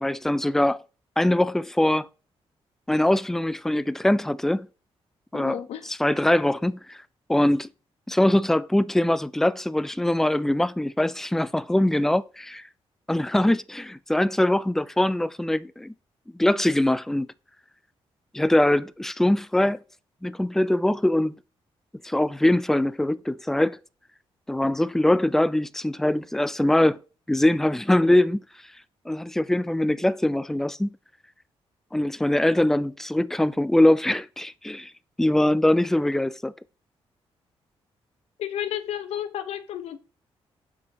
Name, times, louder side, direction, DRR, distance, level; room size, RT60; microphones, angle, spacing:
voice 1, 0.0-0.8 1.2-2.1 2.9-4.7 5.3-7.0 7.3-7.7 8.1-12.6 13.1-15.9 16.4-17.3 18.3-19.8 20.2-21.4 22.0-23.8 24.5-27.0 27.3-28.4 29.1-31.0 31.9-34.9 35.2-36.5, left 1 dB, 5° left, 0.3 m, -22 dB
voice 2, 5.3-5.9 38.4-40.0, left 10 dB, 85° left, 0.7 m, -32 dB
7.1 x 4.8 x 4.1 m
cardioid pair, 110°, 10 cm